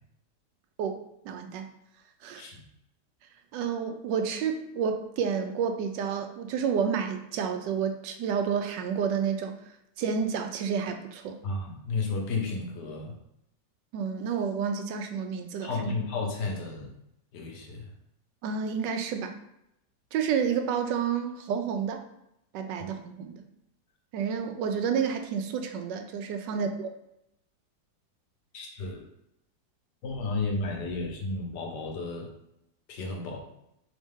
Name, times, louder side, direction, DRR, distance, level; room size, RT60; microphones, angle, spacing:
voice 1, 0.8-1.7 2.2-2.5 3.5-9.5 10.0-11.4 13.9-15.9 18.4-19.4 20.1-22.0 22.5-23.4 24.1-26.9, right 7 dB, 90° right, 6 dB, 1.2 m, -30 dB
voice 2, 11.4-13.1 15.6-16.9 17.3-17.9 28.5-29.1 30.0-32.3 32.9-33.4, left 3 dB, 75° left, 2 dB, 1.4 m, -32 dB
4.1 x 3.6 x 3.6 m, 0.82 s
omnidirectional pair, 1.9 m